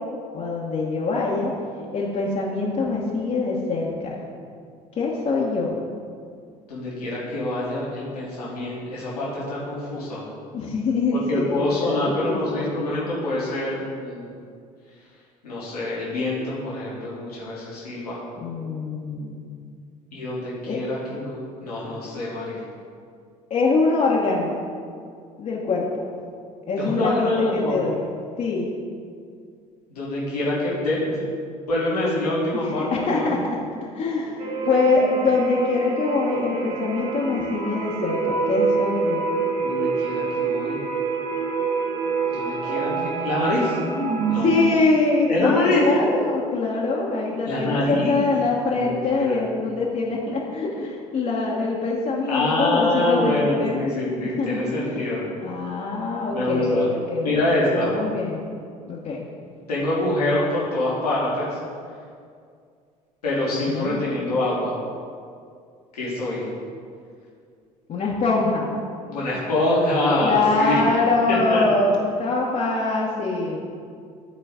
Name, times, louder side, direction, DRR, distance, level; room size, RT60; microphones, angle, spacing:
voice 1, 0.3-1.5 1.9-4.2 5.0-5.7 10.5-12.6 18.4-19.4 20.7-20.8 23.5-24.6 25.4-26.1 26.7-28.0 28.4-28.7 32.5-39.3 44.4-53.8 54.4-54.9 55.4-57.5 57.7-58.4 58.9-59.2 63.7-64.0 67.9-68.7 70.2-73.6, left 3 dB, 40° left, -4 dB, 1.1 m, -24 dB
voice 2, 6.7-10.2 11.1-14.3 15.4-18.2 20.1-22.6 26.8-27.8 29.9-31.2 31.7-33.4 39.6-40.8 42.3-43.8 44.3-44.5 45.3-45.9 47.5-48.2 48.7-49.4 52.3-55.3 56.3-56.9 57.2-57.9 59.7-61.6 63.2-64.8 65.9-66.4 69.1-70.8 71.3-71.6, left 1 dB, 75° left, -7 dB, 1.8 m, -25 dB
sound 1, 34.4-44.7, right 4 dB, 45° right, 1.1 m, -26 dB
12.5 x 4.4 x 3.7 m, 2.2 s
figure-of-eight pair, 55°, 20 cm